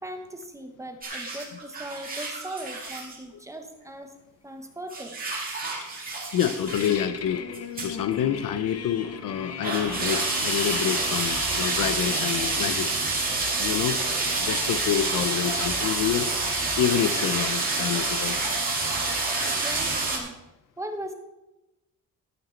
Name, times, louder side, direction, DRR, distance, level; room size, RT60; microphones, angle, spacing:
voice 1, 0.0-4.1 4.4-5.2 19.5-20.3 20.8-21.1, right 1 dB, 10° right, 5 dB, 1.0 m, -38 dB
sound 1, 1.0-3.2 4.9-7.0 7.5-7.9 8.2-8.3 9.0-9.1 9.6-20.2, right 3 dB, 25° right, 2.1 m, -28 dB
voice 2, 6.3-7.4 7.8-12.9 13.3-14.1 14.4-16.3 16.8-18.4, left 9 dB, 80° left, 12 dB, 0.8 m, -27 dB
sound 2, 6.7-12.7, left 7 dB, 50° left, 0.9 m, -37 dB
13.0 x 8.1 x 4.5 m, 1.0 s
wide cardioid pair, 180°, 33 cm